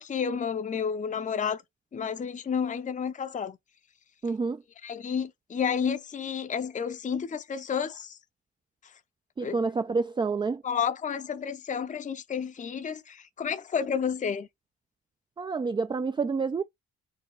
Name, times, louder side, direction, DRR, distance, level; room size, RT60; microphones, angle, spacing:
voice 1, 0.0-1.6 1.9-3.6 4.8-8.2 9.4-9.7 10.6-14.5, left 7 dB, 25° left, 0.6 m, -31 dB
voice 2, 4.2-4.6 9.4-10.6 15.4-16.6, right 4 dB, 15° right, 0.3 m, -28 dB
4.8 x 2.9 x 3.2 m
cardioid pair, 90°, 30 cm